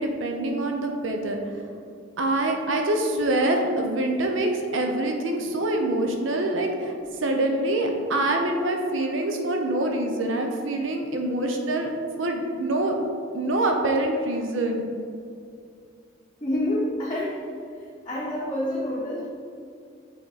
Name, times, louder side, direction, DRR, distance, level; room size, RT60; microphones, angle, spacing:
voice 1, 0.0-1.4 2.2-6.9 7.2-11.9 12.2-13.0 13.3-14.8, right 1 dB, 75° right, 3 dB, 0.7 m, -25 dB
voice 2, 16.4-17.4 18.0-19.3, left 1 dB, 20° left, -7 dB, 0.7 m, -27 dB
5.8 x 4.6 x 4.0 m, 2.3 s
head